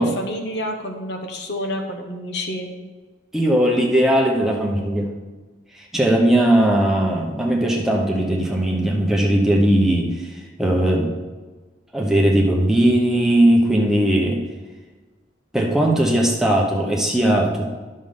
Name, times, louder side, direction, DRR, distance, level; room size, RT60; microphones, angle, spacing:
voice 1, 0.0-2.7, left 1 dB, 60° left, 4 dB, 1.1 m, -29 dB
voice 2, 3.3-5.1 5.7-10.3 10.6-11.1 11.9-14.4 15.5-17.8, right 1 dB, ahead, -1 dB, 0.9 m, -18 dB
10.5 x 6.5 x 3.8 m, 1.3 s
head